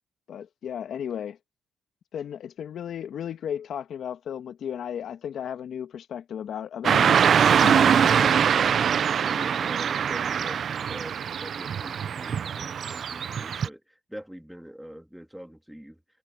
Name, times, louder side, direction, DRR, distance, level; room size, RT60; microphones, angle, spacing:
voice 1, 0.3-1.4 2.1-8.5, left 9 dB, 65° left, 1.3 m, -35 dB
Car passing by / Traffic noise roadway noise, 6.8-13.7, right 7 dB, 55° right, 0.4 m, -23 dB
voice 2, 8.6-10.6 10.9-16.0, equal, 5° right, 2.5 m, -44 dB
cardioid pair, 80°, 0 cm